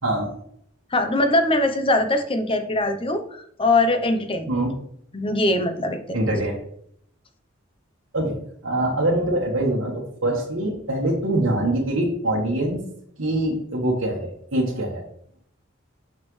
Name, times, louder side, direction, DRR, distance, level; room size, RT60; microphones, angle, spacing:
voice 1, 0.0-0.3 4.5-4.7 6.1-6.5 8.1-8.4 8.6-12.8 13.2-15.0, right 1 dB, 90° right, -4 dB, 1.4 m, -24 dB
voice 2, 0.9-4.5 5.1-6.0, left 2 dB, 25° left, 7 dB, 0.8 m, -22 dB
6.5 x 5.7 x 3.2 m, 0.66 s
head